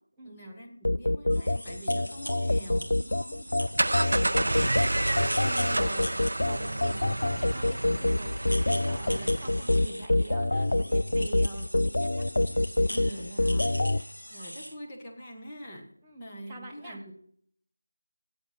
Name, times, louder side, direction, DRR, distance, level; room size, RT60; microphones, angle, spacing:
voice 1, 0.2-3.4 12.9-13.8 14.3-15.9 16.2-17.1, equal, 15° left, -3 dB, 1.7 m, -44 dB
sound 1, 0.8-14.0, left 1 dB, 60° left, 0.4 m, -26 dB
sound 2, 1.3-14.7, equal, 80° left, 2.6 m, -42 dB
sound 3, 3.5-9.9, right 1 dB, 65° right, 0.5 m, -30 dB
voice 2, 4.5-8.3 8.7-12.3 16.0-17.1, right 3 dB, 10° right, -4 dB, 1.2 m, -44 dB
15.5 x 8.9 x 5.6 m, 0.64 s
figure-of-eight pair, 165°, 0 cm